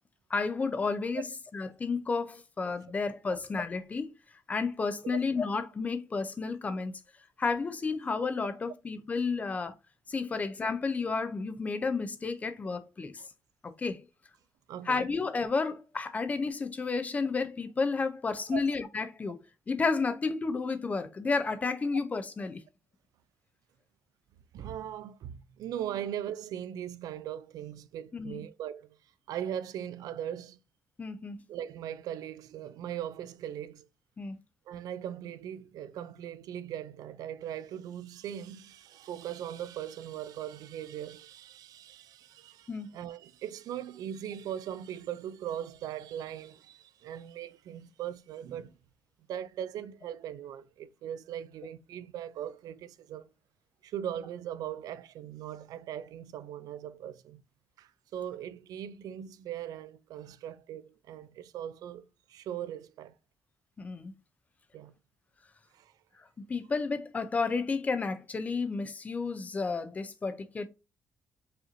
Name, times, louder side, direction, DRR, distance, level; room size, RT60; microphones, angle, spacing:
voice 1, 0.3-1.2 1.5-4.1 4.5-6.9 7.4-9.7 10.1-13.2 13.6-14.0 14.9-19.4 19.7-22.6 28.1-28.4 31.0-31.4 34.2-34.4 42.7-42.9 63.8-64.1 66.4-70.7, left 4 dB, 25° left, 0.5 m, -31 dB
voice 2, 14.7-15.0 18.5-18.6 24.5-29.0 29.3-30.6 31.5-33.8 34.7-48.8 49.3-53.3 53.8-57.4 57.8-63.1 64.7-64.9 65.7-65.9, right 10 dB, 80° right, 0.3 m, -39 dB
4.8 x 3.0 x 2.5 m
cardioid pair, 165°, 6 cm